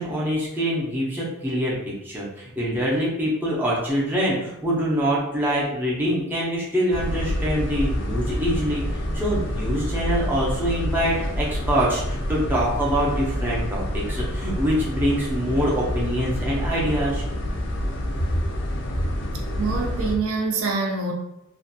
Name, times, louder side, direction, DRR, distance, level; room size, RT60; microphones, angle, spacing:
voice 1, 0.0-8.8 9.1-17.2, equal, 10° right, -6 dB, 0.5 m, -25 dB
sound 1, 6.9-20.2, equal, 55° left, 0.4 m, -27 dB
voice 2, 19.6-21.1, right 4 dB, 80° right, 1 dB, 0.5 m, -25 dB
2.4 x 2.2 x 2.6 m, 0.89 s
head